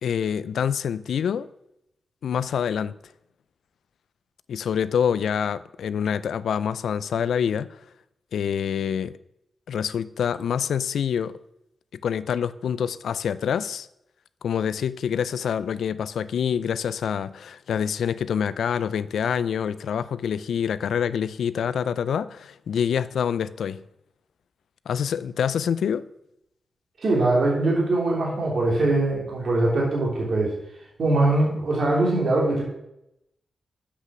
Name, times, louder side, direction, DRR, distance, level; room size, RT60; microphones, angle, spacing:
voice 1, 0.0-1.5 2.2-3.0 4.5-7.7 8.3-9.1 9.7-11.4 12.0-13.9 14.4-23.8 24.9-26.0, left 8 dB, 90° left, 0.4 m, -26 dB
voice 2, 27.0-30.5 31.0-32.7, right 2 dB, 65° right, 2.9 m, -22 dB
8.2 x 5.7 x 6.0 m
cardioid pair, 70°, 0 cm